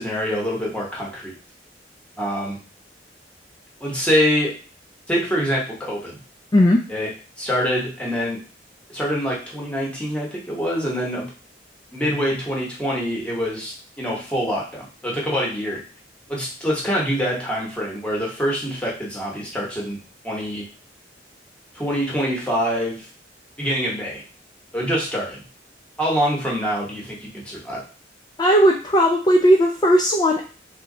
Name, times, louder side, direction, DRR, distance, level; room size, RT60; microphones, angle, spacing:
voice 1, 0.0-1.3 2.2-2.6 3.8-4.5 5.1-6.2 6.9-7.1 7.4-8.4 8.9-11.3 11.9-15.8 16.3-20.0 20.2-20.6 21.7-23.1 23.6-24.2 24.7-25.5 26.0-27.8, equal, 5° left, -4 dB, 1.0 m, -25 dB
voice 2, 6.5-6.8 28.4-30.4, equal, 20° left, 0 dB, 0.3 m, -16 dB
3.1 x 2.3 x 3.7 m, 0.36 s
head